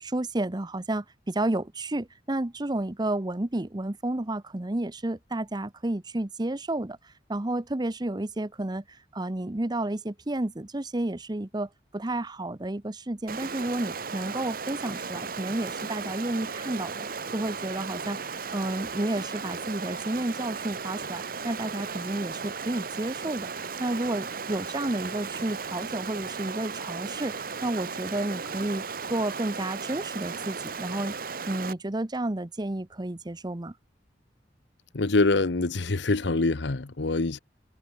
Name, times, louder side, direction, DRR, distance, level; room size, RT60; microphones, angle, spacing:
voice 1, 0.0-7.0 7.3-8.8 9.1-17.1 17.3-18.2 18.5-23.5 23.8-28.8 29.1-31.2 31.5-33.7, right 1 dB, 25° right, 0.9 m, -31 dB
Stream, 13.3-31.7, right 5 dB, 55° right, 1.7 m, -36 dB
voice 2, 34.9-37.4, left 3 dB, 85° left, 1.0 m, -25 dB
head